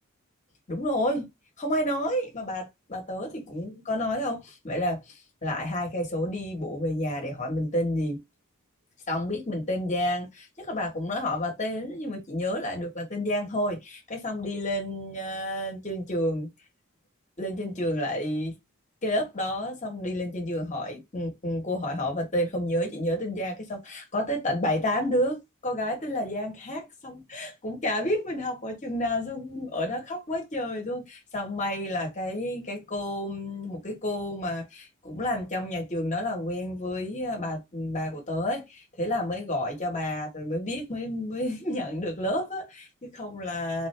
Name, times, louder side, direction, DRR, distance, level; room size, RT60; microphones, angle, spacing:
voice 1, 0.7-1.3 1.6-8.2 9.1-16.5 17.4-18.5 19.0-43.9, left 1 dB, 35° left, 1.4 m, -30 dB
3.7 x 2.7 x 3.3 m
head